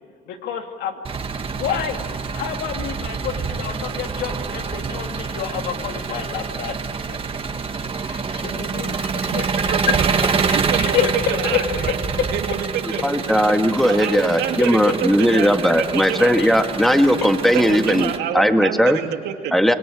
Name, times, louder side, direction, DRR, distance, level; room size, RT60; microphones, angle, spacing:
voice 1, 0.3-1.0 1.5-2.0 2.3-6.7 8.1-10.0 10.2-12.3 14.0-14.2 14.6-15.0 15.4-15.5 16.4-16.5, left 9 dB, 85° left, 5 dB, 2.4 m, -28 dB
Engine, 1.0-18.2, right 5 dB, 35° right, 1.9 m, -26 dB
voice 2, 9.3-12.0 12.3-13.1 13.8-16.3 17.5-19.6, right 10 dB, 80° right, 5 dB, 2.3 m, -28 dB
voice 3, 12.8-19.0 19.5-19.7, equal, ahead, 7 dB, 1.7 m, -18 dB
26.5 x 22.0 x 8.8 m, 2.3 s
cardioid pair, 110°, 17 cm